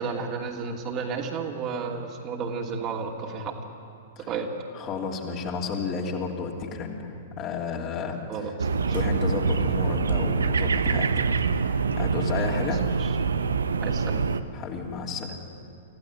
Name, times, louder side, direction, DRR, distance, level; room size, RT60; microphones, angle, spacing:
voice 1, 0.0-3.5 4.2-4.5 8.3-9.0 12.4-12.5 13.0-13.1 13.8-14.2, right 5 dB, 35° right, 0 dB, 2.8 m, -32 dB
voice 2, 4.7-8.2 8.9-11.2 12.0-12.8 14.5-15.4, left 5 dB, 35° left, 0 dB, 3.2 m, -32 dB
sound 1, 8.6-14.4, right 5 dB, 75° right, 0.8 m, -25 dB
26.0 x 15.5 x 9.4 m, 2.6 s
figure-of-eight pair, 110°, 0 cm